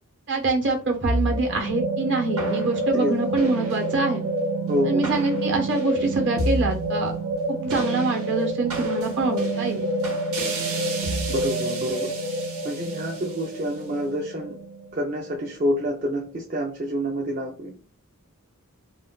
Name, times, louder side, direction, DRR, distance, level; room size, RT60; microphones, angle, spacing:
voice 1, 0.3-4.3 4.8-7.1 7.6-9.9, right 3 dB, 60° right, 2 dB, 1.0 m, -25 dB
sound 1, 1.0-15.5, right 1 dB, 90° right, 1.2 m, -27 dB
voice 2, 4.7-5.1 11.3-12.1 12.6-14.5 14.9-17.7, equal, 40° right, -1 dB, 0.5 m, -27 dB
2.5 x 2.3 x 3.6 m, 0.35 s
head